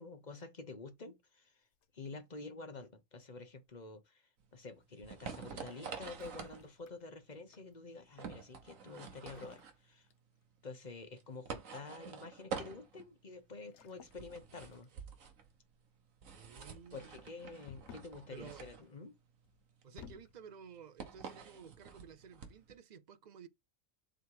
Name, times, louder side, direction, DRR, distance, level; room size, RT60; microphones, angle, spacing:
voice 1, 0.0-1.6 1.9-10.1 10.6-14.9 16.9-19.1, left 3 dB, 35° left, 1.1 m, -49 dB
sound 1, 1.7-2.5 3.7-4.0 6.1-7.7 9.1-10.5 10.8-11.1 13.6-14.3 14.6-15.2 17.6-18.2 19.4-20.4, left 7 dB, 65° left, 1.1 m, -58 dB
sound 2, 4.4-22.7, right 6 dB, 85° right, 1.6 m, -48 dB
voice 2, 16.3-17.2 18.3-18.6 19.8-23.5, right 7 dB, 50° right, 0.6 m, -54 dB
7.7 x 3.3 x 4.8 m
omnidirectional pair, 1.3 m